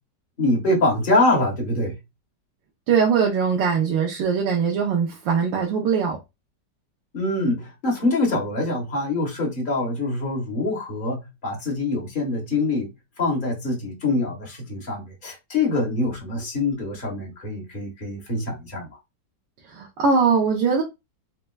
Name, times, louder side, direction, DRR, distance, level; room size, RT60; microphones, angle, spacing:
voice 1, 0.4-2.0 7.1-12.9 13.2-18.9, left 2 dB, 30° left, 1.2 m, -24 dB
voice 2, 2.9-6.2 19.7-20.8, right 6 dB, 85° right, 1.4 m, -21 dB
4.4 x 2.1 x 2.2 m
omnidirectional pair, 1.9 m